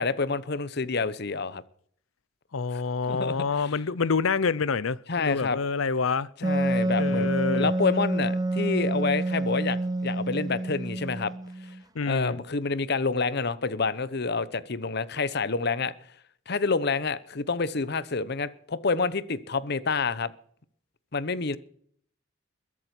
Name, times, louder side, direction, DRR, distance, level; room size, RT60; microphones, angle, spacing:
voice 1, 0.0-1.6 2.7-2.8 3.1-3.5 5.1-5.6 6.4-11.3 12.0-15.9 16.5-20.3 21.1-21.6, left 4 dB, 55° left, 0.9 m, -28 dB
voice 2, 2.5-6.3 7.0-7.7 11.9-12.4, left 4 dB, 85° left, 0.7 m, -27 dB
Wind instrument woodwind instrument, 6.4-11.8, right 1 dB, 20° right, 0.5 m, -28 dB
21.5 x 7.5 x 6.0 m
head